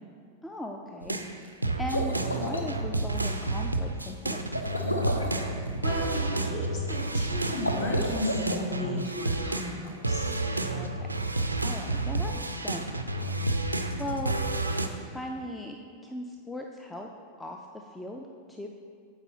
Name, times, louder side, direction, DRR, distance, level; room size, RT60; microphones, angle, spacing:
voice 1, 0.4-4.5 10.7-11.1 11.6-12.9 13.4-13.5 14.0-14.3 15.1-15.8 16.0-17.1 17.4-18.7, left 1 dB, 10° left, 2 dB, 0.4 m, -38 dB
sound 1, 1.0-9.8 10.0-14.9, right 2 dB, 85° right, 0.4 m, -30 dB
sound 2, 1.8-2.7 4.5-5.4 7.5-8.6, equal, 80° left, 0.5 m, -32 dB
voice 2, 5.8-10.3, left 1 dB, 45° left, -3 dB, 1.7 m, -34 dB
8.0 x 4.1 x 3.8 m, 2.2 s
figure-of-eight pair, 90°, 0 cm